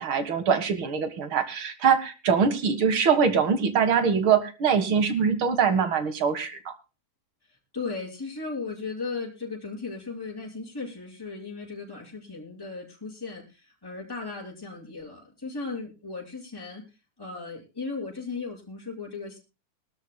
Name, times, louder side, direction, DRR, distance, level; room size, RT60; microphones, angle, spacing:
voice 1, 0.0-6.7, right 6 dB, 50° right, 10 dB, 2.1 m, -23 dB
voice 2, 7.5-16.8 17.2-19.4, left 4 dB, 5° left, -3 dB, 5.6 m, -36 dB
23.5 x 12.5 x 2.2 m, 0.32 s
omnidirectional pair, 3.4 m